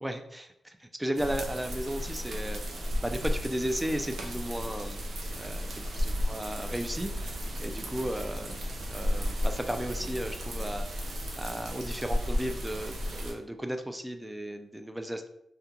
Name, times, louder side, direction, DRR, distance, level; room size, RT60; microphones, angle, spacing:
voice 1, 0.0-5.0 5.3-15.3, equal, 10° right, 6 dB, 0.3 m, -35 dB
sound 1, 1.1-13.3, equal, 70° right, 0.5 m, -34 dB
2.3 x 2.2 x 2.7 m, 0.77 s
cardioid pair, 60°, 0 cm